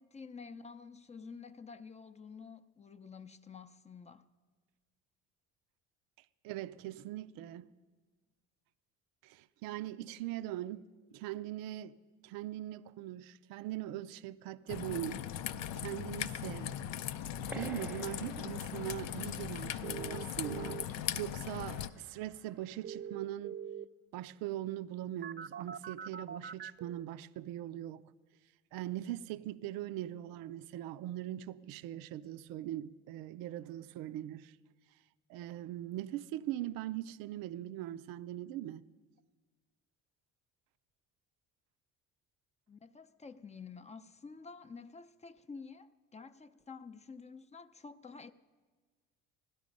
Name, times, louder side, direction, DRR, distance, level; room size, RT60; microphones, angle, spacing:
voice 1, 0.0-4.3 42.7-48.3, left 5 dB, 20° left, 0.5 m, -50 dB
voice 2, 6.4-7.7 9.2-12.0 12.2-15.2 15.8-16.8 17.5-20.8 21.2-23.6 24.1-28.0 28.7-34.6 35.3-38.8, right 13 dB, 80° right, 0.5 m, -41 dB
Raindrop / Trickle dribble, 14.7-21.9, left 10 dB, 80° left, 0.6 m, -39 dB
sound 1, 17.5-22.7, right 1 dB, 5° right, 0.9 m, -52 dB
sound 2, 19.8-20.8 22.8-23.8 25.2-27.0, right 8 dB, 30° right, 0.5 m, -43 dB
17.0 x 12.0 x 5.2 m
supercardioid pair, 90°, 34 cm